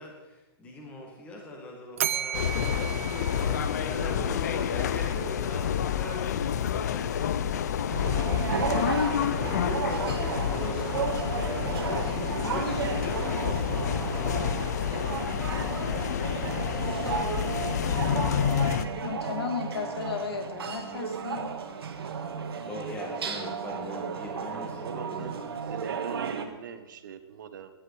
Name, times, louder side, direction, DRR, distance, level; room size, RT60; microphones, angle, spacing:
voice 1, 0.0-7.0 9.4-12.6 13.3-13.9 22.6-25.4, left 2 dB, 10° left, 0 dB, 2.0 m, -40 dB
Bell, 2.0-4.3, right 10 dB, 30° right, 0.3 m, -34 dB
sound 1, 2.3-18.9, left 8 dB, 40° left, 0.6 m, -29 dB
sound 2, 7.9-26.5, right 6 dB, 65° right, 1.7 m, -33 dB
voice 2, 19.0-21.5, left 6 dB, 65° left, 5 dB, 2.4 m, -34 dB
voice 3, 24.8-25.4 25.7-27.7, right 7 dB, 45° right, 10 dB, 1.0 m, -41 dB
15.5 x 11.0 x 4.8 m, 1.0 s
hypercardioid pair, 175°, 14 cm